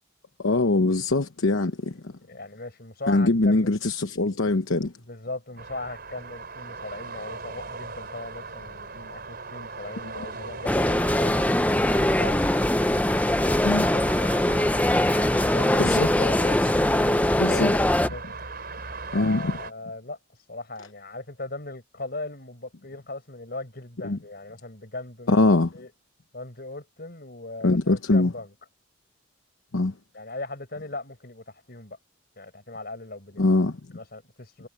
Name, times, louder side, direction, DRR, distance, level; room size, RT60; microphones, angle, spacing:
voice 1, 0.4-2.1 3.1-4.9 10.0-10.1 13.6-13.8 15.8-16.1 17.4-17.7 19.1-19.6 24.0-24.2 25.3-25.7 27.6-28.3 29.7-29.9 33.4-33.8, left 2 dB, 80° left, 1.0 m, -22 dB
voice 2, 2.3-3.8 5.1-12.4 13.1-14.5 15.1-18.4 19.1-25.9 26.3-28.5 30.1-32.0 32.4-33.4 33.9-34.7, left 2 dB, 50° left, 4.9 m, -38 dB
sound 1, 5.6-19.7, right 3 dB, 50° right, 5.2 m, -39 dB
sound 2, 10.7-18.1, left 1 dB, 5° left, 0.5 m, -22 dB
head